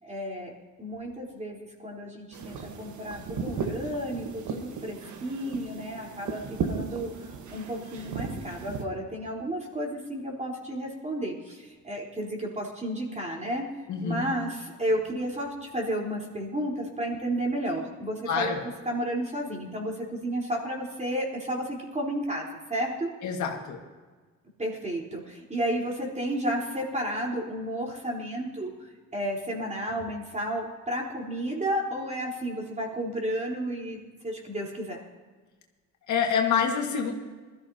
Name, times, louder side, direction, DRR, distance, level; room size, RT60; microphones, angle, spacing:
voice 1, 0.0-6.4 6.7-13.7 14.0-18.5 18.9-23.1 24.6-28.7 29.1-35.0, right 1 dB, 25° right, -2 dB, 4.1 m, -32 dB
sound 1, 2.3-8.8, right 5 dB, 75° right, 1.5 m, -36 dB
voice 2, 13.9-14.3 18.3-18.6 23.2-23.8 36.1-37.1, left 6 dB, 70° left, 2 dB, 1.9 m, -26 dB
21.0 x 14.0 x 2.9 m, 1.4 s
cardioid pair, 90°, 30 cm